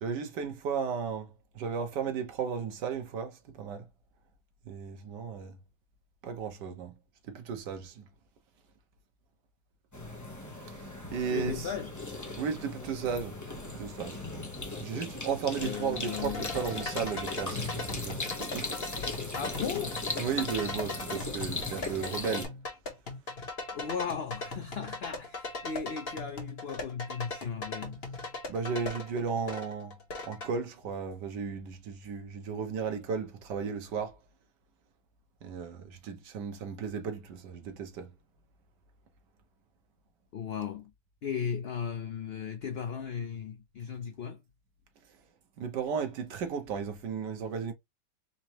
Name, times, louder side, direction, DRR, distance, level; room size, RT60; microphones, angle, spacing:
voice 1, 0.0-3.8 4.6-5.6 6.2-6.9 7.3-8.0 11.1-11.7 12.4-13.4 13.7-14.2 14.8-18.2 18.5-18.7 20.2-22.5 28.5-30.0 30.2-34.2 35.4-38.1 45.6-47.7, right 6 dB, 90° right, 1.6 m, -34 dB
sound 1, 9.9-22.5, left 2 dB, 20° left, 0.5 m, -38 dB
voice 2, 11.3-11.9 15.6-16.5 19.3-20.0 23.7-28.0 40.3-40.9 41.2-44.4, left 7 dB, 75° left, 0.5 m, -36 dB
sound 2, 15.6-30.5, left 3 dB, 40° left, 1.2 m, -39 dB
4.1 x 2.9 x 2.9 m
omnidirectional pair, 1.8 m